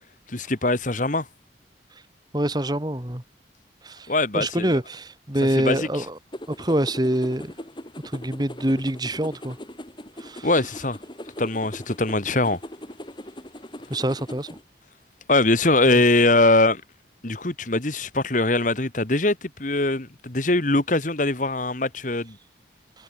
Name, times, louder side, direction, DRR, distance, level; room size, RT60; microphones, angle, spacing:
voice 1, 0.3-1.3 4.1-4.8 5.4-6.1 10.4-11.0 11.4-12.6 15.3-16.8 17.2-22.4, left 2 dB, 45° left, 1.8 m, -22 dB
voice 2, 2.3-3.2 3.8-4.0 4.3-6.1 6.6-7.5 8.1-9.6 10.2-10.5 13.9-14.5, right 1 dB, 20° right, 1.9 m, -25 dB
sound 1, 6.3-14.6, equal, 25° left, 5.2 m, -40 dB
head